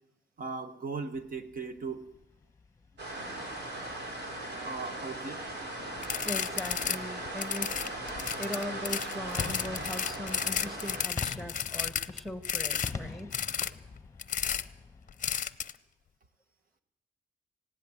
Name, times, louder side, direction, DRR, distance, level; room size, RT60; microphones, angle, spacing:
voice 1, 0.4-2.1 4.6-5.5, right 4 dB, 50° right, 9 dB, 1.4 m, -38 dB
sound 1, 1.1-15.3, left 4 dB, 15° left, 1.2 m, -46 dB
sound 2, 3.0-11.0, right 1 dB, 75° right, 5.4 m, -38 dB
sound 3, 6.0-7.0 7.3-12.9 13.3-13.7 14.2-14.6 15.2-15.7, left 8 dB, 45° left, 0.7 m, -32 dB
voice 2, 6.2-7.8 8.1-13.4, left 1 dB, ahead, 8 dB, 1.6 m, -40 dB
19.5 x 16.5 x 9.0 m, 0.85 s
wide cardioid pair, 145°, 18 cm